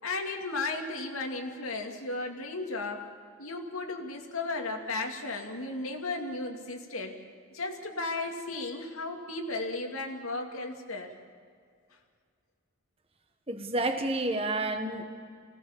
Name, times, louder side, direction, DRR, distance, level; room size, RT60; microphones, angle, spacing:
voice 1, 0.0-3.0 3.4-7.2 7.5-11.1, left 3 dB, 90° left, 3 dB, 2.5 m, -35 dB
voice 2, 13.5-15.0, right 2 dB, 25° right, 6 dB, 1.6 m, -29 dB
24.5 x 18.0 x 7.3 m, 2.1 s
head